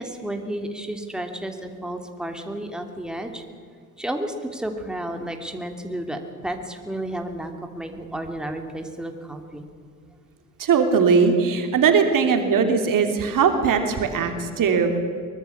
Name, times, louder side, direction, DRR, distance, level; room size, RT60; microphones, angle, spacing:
voice 1, 0.0-3.4 4.0-9.6, right 1 dB, ahead, 4 dB, 3.1 m, -32 dB
voice 2, 10.6-15.0, right 5 dB, 50° right, 6 dB, 3.2 m, -20 dB
23.0 x 21.0 x 7.2 m, 2.3 s
hypercardioid pair, 60°, 42 cm